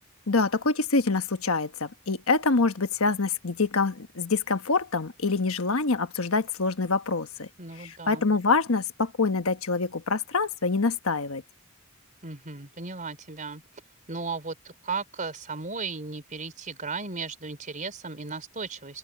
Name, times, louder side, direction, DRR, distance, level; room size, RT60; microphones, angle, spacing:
voice 1, 0.3-7.5 7.8-11.4, left 3 dB, 70° left, 1.3 m, -25 dB
voice 2, 7.6-8.3 12.2-13.6 14.1-19.0, right 4 dB, 40° right, 4.0 m, -35 dB
head